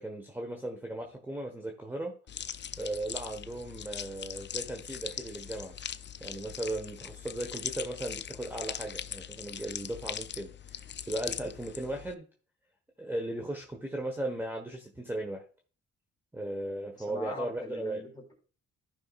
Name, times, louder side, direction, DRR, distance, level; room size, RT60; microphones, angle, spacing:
voice 1, 0.0-2.1 2.8-5.7 6.2-12.3 13.0-15.4 16.3-18.0, right 1 dB, 5° right, 3 dB, 1.3 m, -37 dB
Chicken Meat Slime, 2.3-12.1, left 9 dB, 40° left, 0.5 m, -40 dB
voice 2, 17.0-18.3, left 2 dB, 15° left, 0 dB, 3.8 m, -42 dB
14.5 x 5.6 x 2.5 m, 0.38 s
cardioid pair, 90°, 30 cm